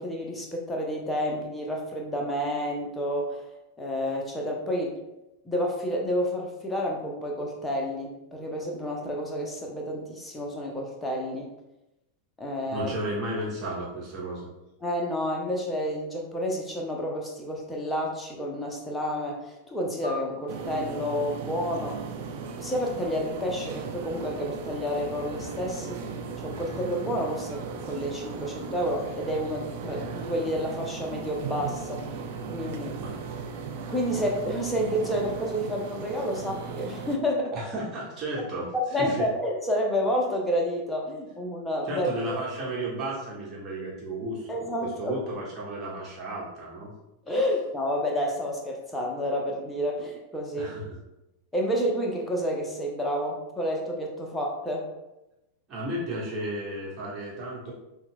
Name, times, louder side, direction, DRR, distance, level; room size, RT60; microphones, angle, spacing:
voice 1, 0.0-3.4 3.8-5.0 5.4-11.5 12.4-12.9 14.8-22.0 22.6-26.1 26.4-32.2 32.5-33.0 33.9-37.5 38.7-42.1 44.5-45.2 47.3-50.7 51.5-54.9, equal, 10° left, -1 dB, 0.7 m, -30 dB
voice 2, 12.7-14.5 33.0-33.2 37.5-38.7 39.1-39.3 41.9-46.9 50.5-51.0 55.7-57.7, right 1 dB, 30° right, -5 dB, 1.3 m, -33 dB
sound 1, 20.0-22.8, left 2 dB, 90° left, 0.4 m, -45 dB
sound 2, 20.5-37.2, right 5 dB, 50° right, 0.4 m, -37 dB
sound 3, 21.7-33.5, right 1 dB, 80° right, 0.8 m, -49 dB
5.7 x 2.3 x 2.2 m, 0.94 s
figure-of-eight pair, 90°, 0 cm